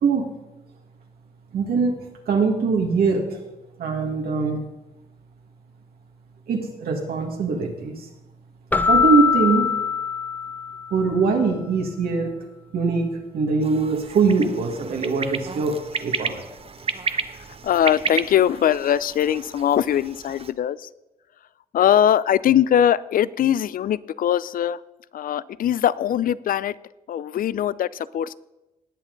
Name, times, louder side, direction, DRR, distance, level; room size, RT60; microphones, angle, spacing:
voice 1, 1.5-2.0 2.3-3.4 3.8-4.6 6.5-8.1 8.9-9.7 10.9-12.3 12.7-13.1 13.3-16.4, right 4 dB, 80° right, 1 dB, 1.7 m, -22 dB
Keyboard (musical), 8.7-11.1, left 6 dB, 10° left, 0.5 m, -22 dB
sound 1, 13.6-20.5, right 5 dB, 40° right, 0.7 m, -32 dB
voice 2, 17.6-20.9 21.7-24.8 25.1-26.7 27.1-27.9 28.1-28.3, left 10 dB, 65° left, 19 dB, 0.4 m, -21 dB
19.0 x 7.4 x 3.9 m, 1.0 s
cardioid pair, 85°, 16 cm